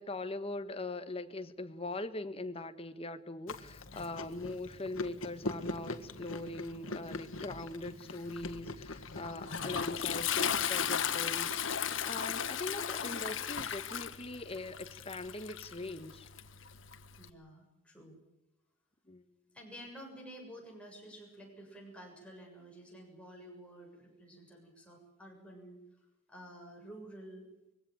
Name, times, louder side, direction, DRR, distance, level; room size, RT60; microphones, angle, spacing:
voice 1, 0.0-16.3 19.1-19.2, left 2 dB, 30° left, 10 dB, 1.4 m, -41 dB
Chewing mastication, 3.5-10.7, left 2 dB, 90° left, 1.8 m, -43 dB
Toilet flush, 9.0-17.3, left 8 dB, 65° left, 1.3 m, -35 dB
voice 2, 17.2-18.2 19.5-27.5, right 1 dB, 5° left, -1 dB, 7.1 m, -51 dB
22.5 x 17.0 x 9.2 m, 0.92 s
head